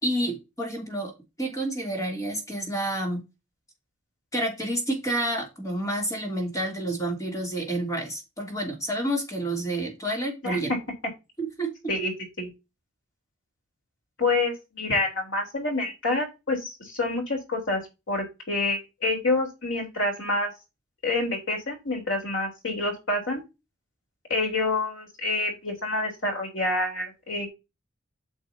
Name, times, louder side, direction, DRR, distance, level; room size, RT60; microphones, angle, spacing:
voice 1, 0.0-1.1 1.4-3.2 4.3-10.7 11.4-11.7, right 1 dB, 15° left, 0 dB, 3.1 m, -29 dB
voice 2, 14.2-17.8 18.1-20.5 21.0-23.4 24.3-27.5, left 2 dB, 70° left, 1 dB, 3.8 m, -27 dB
9.2 x 6.4 x 2.8 m, 0.25 s
head